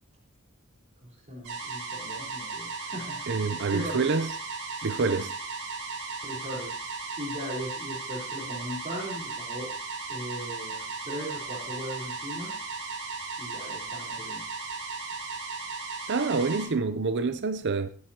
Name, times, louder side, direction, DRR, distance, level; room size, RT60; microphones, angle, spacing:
voice 1, 1.0-4.1 6.2-9.7 10.1-12.5 13.4-14.4, equal, 30° right, 4.2 m, -38 dB
sound 1, 1.4-16.7, right 4 dB, 75° right, 4.5 m, -36 dB
voice 2, 3.3-4.3 4.8-5.3 16.1-17.9, right 4 dB, 55° right, 0.6 m, -27 dB
20.5 x 9.5 x 2.9 m
head